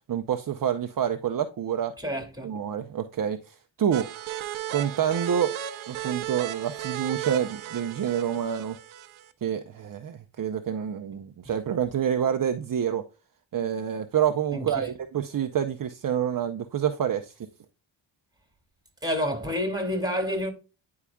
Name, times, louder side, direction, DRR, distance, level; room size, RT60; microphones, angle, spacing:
voice 1, 0.1-1.9 2.4-4.1 4.7-5.5 5.9-8.8 9.4-13.0 13.5-17.5, right 9 dB, 45° right, 0.7 m, -27 dB
voice 2, 2.0-2.5 14.5-14.9 19.0-20.5, equal, 10° right, 2.6 m, -29 dB
sound 1, 3.9-9.3, right 12 dB, 90° right, 0.8 m, -35 dB
9.8 x 4.8 x 2.3 m
cardioid pair, 80°, 46 cm